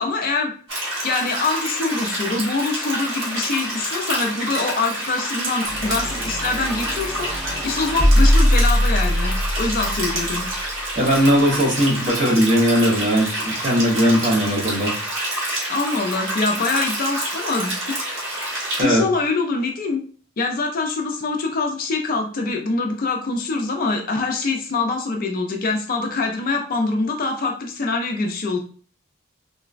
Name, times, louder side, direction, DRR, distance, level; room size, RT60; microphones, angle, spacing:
voice 1, 0.0-10.5 15.7-18.0 18.8-20.0 20.4-28.6, left 3 dB, 45° left, 3 dB, 0.4 m, -24 dB
sound 1, 0.7-18.8, right 1 dB, 65° right, 1.2 m, -28 dB
sound 2, 5.7-10.9, equal, ahead, 0.8 m, -21 dB
voice 2, 11.0-14.9 18.8-19.0, equal, 40° right, -3 dB, 0.9 m, -18 dB
3.8 x 2.1 x 2.4 m, 0.43 s
head